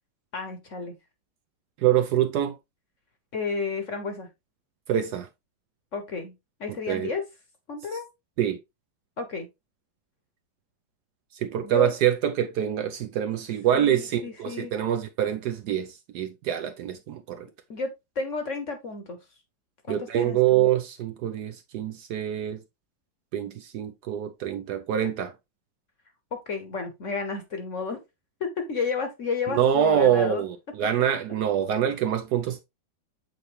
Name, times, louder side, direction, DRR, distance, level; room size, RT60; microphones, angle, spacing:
voice 1, 0.3-1.0 3.3-4.3 5.9-6.3 6.6-7.2 7.7-8.1 9.2-9.5 11.6-11.9 13.7-14.7 17.7-19.2 19.8-20.7 26.3-28.0 28.4-30.4, left 4 dB, 50° left, 1.1 m, -32 dB
voice 2, 1.8-2.5 4.9-5.3 6.9-7.1 8.4-8.6 11.3-17.5 19.9-22.6 23.3-25.3 29.5-32.6, right 10 dB, 70° right, 1.0 m, -25 dB
7.9 x 4.2 x 3.1 m
omnidirectional pair, 2.1 m